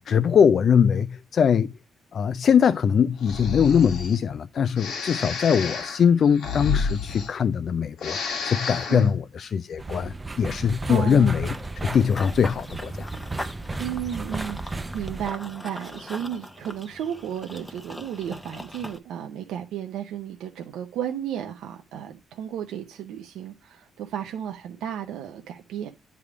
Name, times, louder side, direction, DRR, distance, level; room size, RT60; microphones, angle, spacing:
voice 1, 0.0-1.7 2.1-13.1, left 7 dB, 55° left, 0.3 m, -22 dB
Breathing, 3.2-4.2 4.8-7.7 7.9-9.1, left 5 dB, 75° left, 1.3 m, -30 dB
sound 1, 9.8-15.3, right 2 dB, 20° right, 0.5 m, -34 dB
voice 2, 10.9-11.4 13.8-25.9, right 9 dB, 85° right, 0.6 m, -33 dB
Run / Bird vocalization bird call bird song, 11.5-19.0, left 1 dB, 10° left, 0.9 m, -40 dB
9.6 x 3.5 x 4.8 m
cardioid pair, 90°, 0 cm